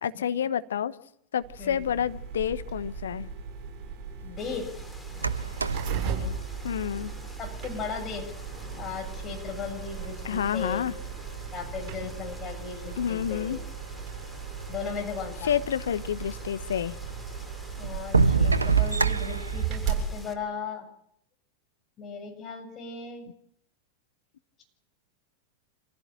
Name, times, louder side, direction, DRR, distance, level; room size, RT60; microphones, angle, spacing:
voice 1, 0.0-1.0 1.3-3.3 6.6-7.1 10.2-10.9 13.0-13.6 15.4-17.0, left 9 dB, 65° left, 1.1 m, -29 dB
sound 1, 1.4-20.1, right 6 dB, 35° right, 7.4 m, -37 dB
voice 2, 4.2-4.7 7.4-8.3 8.7-10.9 11.5-13.6 14.7-15.5 17.8-20.9 22.0-23.3, left 6 dB, 30° left, 7.2 m, -37 dB
sound 2, 4.4-20.3, left 1 dB, 5° left, 2.9 m, -49 dB
sound 3, 5.1-7.4 8.5-8.6 9.2-10.3 11.0-11.8 12.6-12.7 12.9-13.0 13.6-13.7 14.0-14.7 16.4-16.5 17.1-17.2 17.8-19.7, right 5 dB, 80° right, 1.0 m, -26 dB
27.0 x 16.0 x 7.5 m
figure-of-eight pair, 90°, 0 cm